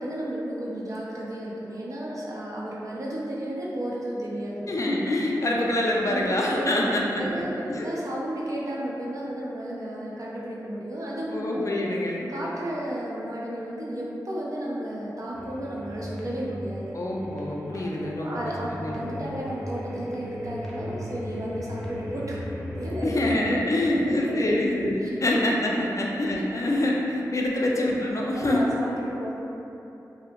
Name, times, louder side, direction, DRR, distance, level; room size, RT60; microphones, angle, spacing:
voice 1, 0.0-4.7 6.1-6.7 7.1-11.7 12.3-16.9 17.7-22.4 22.8-23.1 23.4-23.6 23.9-24.5 25.0-25.1 27.4-27.5 28.4-29.4, right 1 dB, 50° right, -5 dB, 0.6 m, -33 dB
voice 2, 4.7-7.9 11.3-12.3 16.9-18.5 18.8-19.0 23.0-28.7, left 1 dB, 50° left, -2 dB, 0.4 m, -26 dB
sound 1, 15.3-23.4, equal, 5° left, 0.6 m, -37 dB
2.7 x 2.0 x 2.8 m, 2.9 s
cardioid pair, 45°, 7 cm